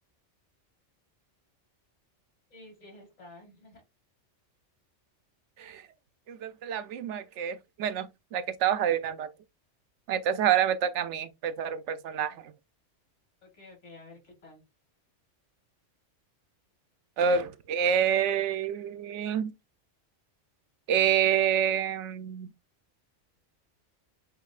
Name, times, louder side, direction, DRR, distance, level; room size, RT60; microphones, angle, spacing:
voice 1, 2.5-3.8 12.3-12.4 13.4-14.6, left 2 dB, 70° left, 2.4 m, -51 dB
voice 2, 6.3-9.3 10.1-12.5 17.2-19.5 20.9-22.5, right 8 dB, 75° right, 0.9 m, -27 dB
7.7 x 2.7 x 2.3 m
omnidirectional pair, 1.3 m